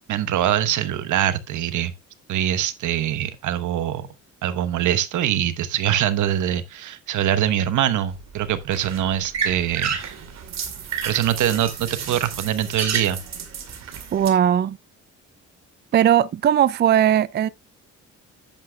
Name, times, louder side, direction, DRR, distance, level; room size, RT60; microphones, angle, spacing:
voice 1, 0.1-1.9 2.3-4.1 4.4-10.2 11.0-13.2, right 11 dB, 75° right, 1.1 m, -23 dB
sound 1, 8.1-14.3, right 7 dB, 60° right, 2.3 m, -31 dB
voice 2, 14.1-14.8 15.9-17.5, right 10 dB, 35° right, 0.4 m, -18 dB
10.5 x 8.8 x 2.3 m
cardioid pair, 90°, 30 cm